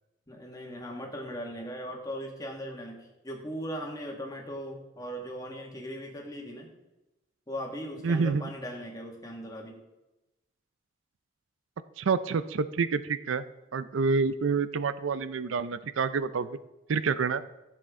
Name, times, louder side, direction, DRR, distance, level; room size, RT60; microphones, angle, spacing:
voice 1, 0.3-6.7 7.5-9.8, equal, 20° left, 1 dB, 1.7 m, -39 dB
voice 2, 8.0-8.5 12.0-13.4 13.7-16.6 16.9-17.4, right 5 dB, 80° right, 13 dB, 0.5 m, -28 dB
14.5 x 7.7 x 3.7 m, 1.0 s
head